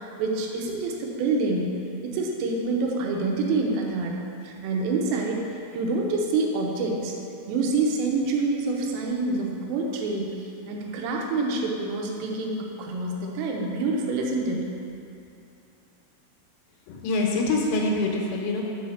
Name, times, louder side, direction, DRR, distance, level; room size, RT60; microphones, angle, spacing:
voice 1, 0.0-1.7 2.0-4.2 4.4-7.2 7.5-14.6, right 3 dB, 85° right, 0 dB, 3.4 m, -27 dB
voice 2, 16.9-18.6, left 2 dB, 80° left, 0 dB, 3.3 m, -25 dB
7.1 x 4.9 x 6.3 m, 2.7 s
omnidirectional pair, 5.7 m